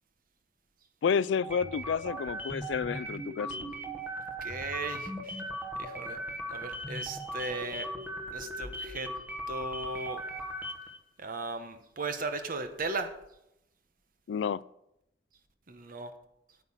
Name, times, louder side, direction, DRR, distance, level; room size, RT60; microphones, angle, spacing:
voice 1, 1.0-3.7 14.3-14.6, left 6 dB, 80° left, 20 dB, 0.3 m, -30 dB
sound 1, 1.4-11.0, equal, 10° right, 1.2 m, -38 dB
voice 2, 4.4-5.4 5.8-6.2 6.5-7.9 8.3-9.1 9.5-10.2 11.2-13.1 15.7-16.1, right 3 dB, 50° right, 8 dB, 1.0 m, -36 dB
9.0 x 8.7 x 5.7 m, 0.83 s
head